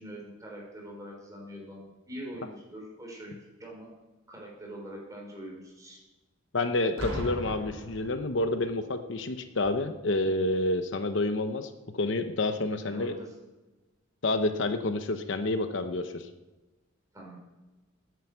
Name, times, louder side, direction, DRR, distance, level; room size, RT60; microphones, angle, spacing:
voice 1, 0.0-3.9 4.3-6.0 12.8-13.3 17.1-17.4, equal, 15° right, -2 dB, 4.6 m, -43 dB
voice 2, 6.5-13.2 14.2-16.3, left 2 dB, 65° left, 8 dB, 0.9 m, -29 dB
Boom, 7.0-8.7 9.6-9.9, equal, 85° right, 3.6 m, -38 dB
11.5 x 9.6 x 8.0 m, 1.1 s
head